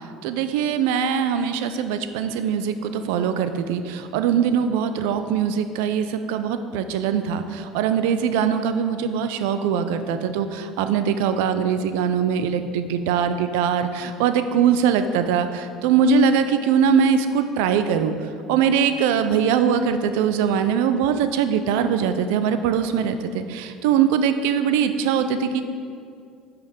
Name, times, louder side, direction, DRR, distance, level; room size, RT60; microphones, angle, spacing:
voice 1, 0.2-25.6, right 7 dB, 85° right, 9 dB, 0.4 m, -22 dB
5.6 x 5.3 x 6.3 m, 2.3 s
supercardioid pair, 95°, 0 cm